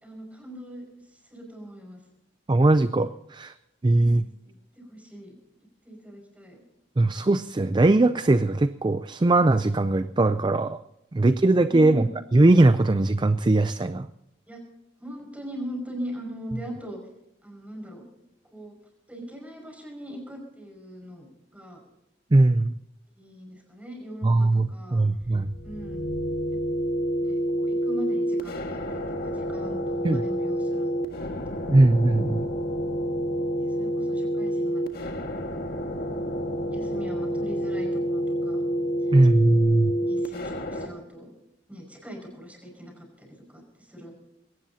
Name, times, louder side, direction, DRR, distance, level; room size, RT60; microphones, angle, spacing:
voice 1, 0.0-0.8 1.1-2.0 4.0-5.3 5.8-6.6 11.7-12.2 14.5-14.6 15.0-17.0 17.4-18.0 18.5-18.8 19.1-21.3 21.5-21.8 23.2-25.0 25.6-26.1 26.7-26.8 27.2-30.9 31.5-31.9 33.6-35.6 36.7-38.6 40.0-41.3 41.7-44.1, equal, 10° right, 1 dB, 5.5 m, -40 dB
voice 2, 2.5-3.5 3.8-4.3 7.0-10.8 11.1-14.1 22.3-22.7 24.2-25.5 30.0-30.2 31.7-32.5 39.1-39.9, right 2 dB, 25° right, 12 dB, 0.4 m, -20 dB
sound 1, 25.2-40.9, equal, 55° left, 1.7 m, -28 dB
22.0 x 17.5 x 2.8 m, 0.85 s
head